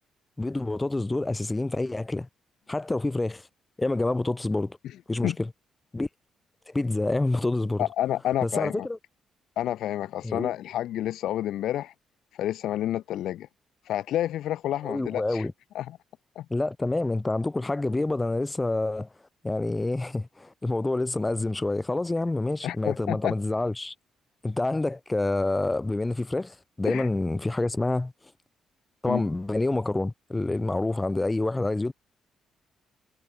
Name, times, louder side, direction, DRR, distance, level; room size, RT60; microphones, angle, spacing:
voice 1, 0.4-2.3 2.7-3.4 3.8-4.8 5.1-5.5 5.9-6.1 6.7-7.9 8.4-9.0 10.2-10.5 14.8-15.5 16.5-19.1 19.4-23.9 24.4-28.1 29.0-31.9, left 2 dB, 15° left, 7.3 m, -27 dB
voice 2, 7.8-8.9 9.6-11.9 12.4-13.5 13.9-15.5 15.7-16.0 16.4-16.5 22.6-23.3 26.8-27.1 29.1-29.2, left 12 dB, 80° left, 4.4 m, -29 dB
cardioid pair, 90°, 0 cm